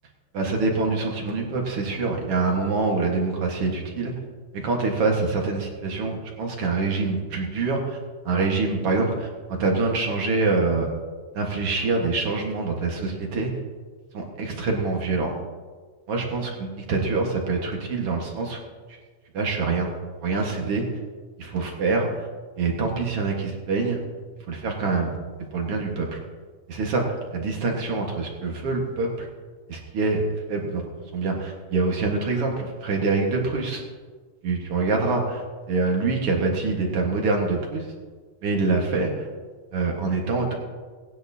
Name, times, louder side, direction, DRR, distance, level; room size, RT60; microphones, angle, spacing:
voice 1, 0.3-4.1 4.5-8.0 8.3-10.9 11.3-13.5 14.1-15.3 16.1-18.6 19.3-19.9 20.2-20.9 21.4-22.1 22.6-24.0 24.5-25.2 25.5-26.2 26.7-29.3 29.7-30.2 30.5-30.8 31.1-33.8 34.4-37.8 38.4-39.3 39.7-40.6, right 3 dB, 50° right, 1 dB, 2.2 m, -25 dB
18.5 x 10.5 x 2.8 m, 1.4 s
omnidirectional pair, 3.7 m